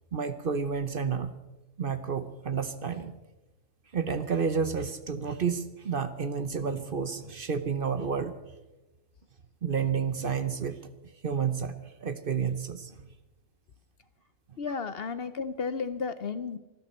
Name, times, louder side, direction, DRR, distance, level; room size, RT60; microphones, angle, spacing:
voice 1, 0.1-1.3 1.8-3.1 3.9-8.3 9.6-10.8 11.2-11.8 12.0-13.0, right 6 dB, 50° right, 11 dB, 0.9 m, -30 dB
voice 2, 14.6-16.6, left 5 dB, 55° left, 13 dB, 0.9 m, -33 dB
25.5 x 13.0 x 4.3 m, 1.1 s
omnidirectional pair, 1.4 m